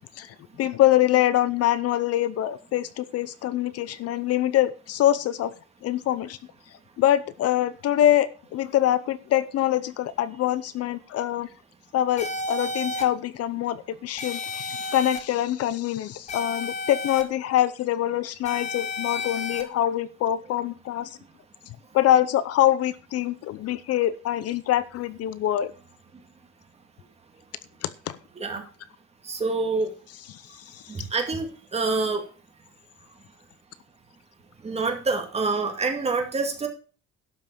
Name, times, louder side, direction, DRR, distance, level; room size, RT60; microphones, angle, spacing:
voice 1, 0.2-5.5 5.8-6.4 7.0-11.5 11.9-21.2 21.9-25.7 27.8-28.2 30.3-31.1, left 12 dB, 55° left, 16 dB, 0.7 m, -24 dB
sound 1, 12.2-13.0 14.2-15.2 16.3-17.2 18.4-19.6, left 3 dB, 25° left, 1.5 m, -31 dB
voice 2, 29.3-29.9 30.9-31.5 31.7-32.2 34.6-36.7, right 3 dB, 20° right, 3 dB, 2.3 m, -26 dB
12.0 x 5.9 x 6.8 m, 0.39 s
cardioid pair, 160°, 29 cm